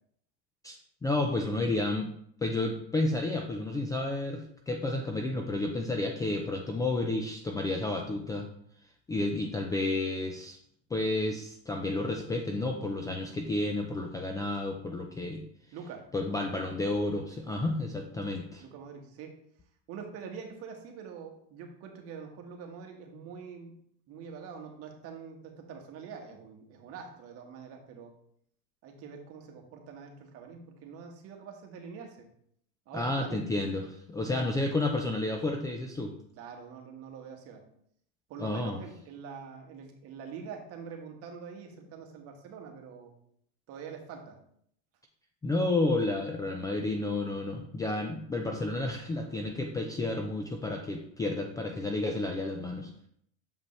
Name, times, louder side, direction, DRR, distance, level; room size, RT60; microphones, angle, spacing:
voice 1, 0.6-2.1 2.4-8.5 9.1-10.6 10.9-15.4 16.1-18.6 32.9-36.1 38.4-38.8 45.4-52.9, left 2 dB, 10° left, 3 dB, 0.4 m, -31 dB
voice 2, 15.7-16.1 18.6-19.3 19.9-23.7 24.1-28.1 28.8-32.3 32.9-33.5 34.3-34.5 36.4-37.7 38.3-43.1 43.7-44.4, right 6 dB, 45° right, 3 dB, 1.4 m, -44 dB
7.1 x 5.0 x 3.2 m, 0.67 s
supercardioid pair, 140°, 33 cm